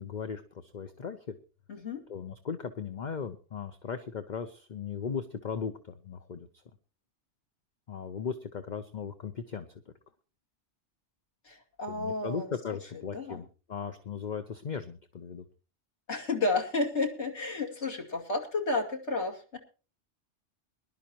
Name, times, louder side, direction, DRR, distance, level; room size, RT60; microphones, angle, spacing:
voice 1, 0.0-1.4 2.1-6.5 7.9-9.9 11.9-15.5, left 6 dB, 45° left, 9 dB, 0.9 m, -37 dB
voice 2, 1.7-2.0 11.4-12.5 13.1-13.4 16.1-19.6, left 3 dB, 75° left, 1 dB, 2.6 m, -31 dB
22.0 x 11.5 x 2.9 m, 0.34 s
omnidirectional pair, 1.2 m